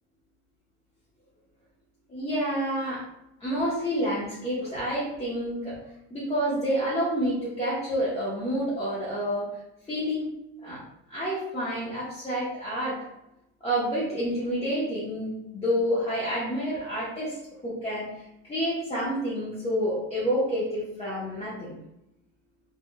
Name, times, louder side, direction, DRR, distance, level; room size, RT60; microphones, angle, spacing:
voice 1, 2.1-3.0 3.4-5.7 6.1-9.5 9.9-10.3 10.6-10.8 11.1-13.0 13.6-17.4 17.6-21.8, equal, 15° left, -9 dB, 0.9 m, -29 dB
3.4 x 2.3 x 2.2 m, 0.85 s
supercardioid pair, 100°, 38 cm